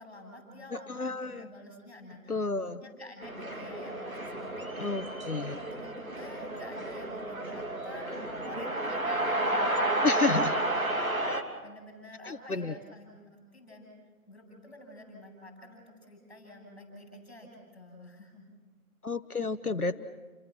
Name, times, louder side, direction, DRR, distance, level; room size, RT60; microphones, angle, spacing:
voice 1, 0.0-5.0 5.4-10.7 11.6-13.9 14.3-18.4, left 1 dB, ahead, -17 dB, 7.0 m, -49 dB
voice 2, 0.9-1.5 2.3-2.8 4.8-5.5 10.0-10.5 12.2-12.8 19.0-20.0, left 3 dB, 75° left, 9 dB, 1.3 m, -31 dB
sound 1, 3.2-11.4, right 1 dB, 65° right, 3.0 m, -32 dB
30.0 x 25.0 x 6.0 m, 1.3 s
figure-of-eight pair, 165°, 44 cm